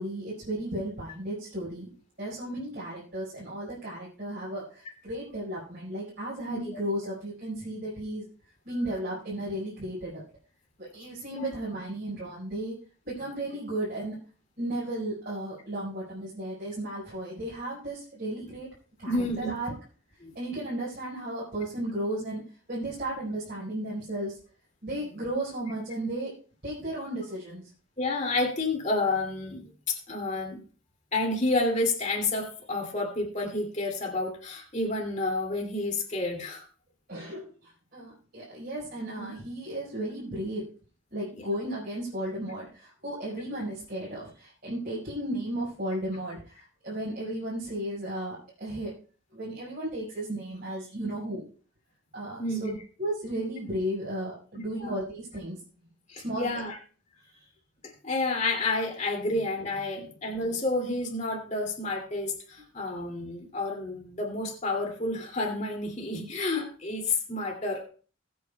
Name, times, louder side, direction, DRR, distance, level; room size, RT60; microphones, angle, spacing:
voice 1, 0.0-1.9 2.2-8.2 8.6-10.2 10.8-12.8 13.0-14.2 14.6-18.7 19.0-19.1 19.4-19.7 20.3-22.4 22.7-24.4 24.8-26.3 26.6-27.7 37.1-40.7 41.1-48.9 49.3-51.4 52.1-52.7 53.0-55.6 56.2-56.6 57.3-57.5, right 1 dB, 45° right, -7 dB, 4.8 m, -34 dB
voice 2, 6.5-6.8 11.3-11.4 19.1-19.5 20.2-20.3 28.0-30.6 31.1-36.7 39.2-39.3 41.3-41.5 52.4-52.8 54.5-55.0 56.1-56.8 57.8-67.8, left 2 dB, 35° left, 0 dB, 2.6 m, -30 dB
21.5 x 8.5 x 2.3 m, 0.40 s
head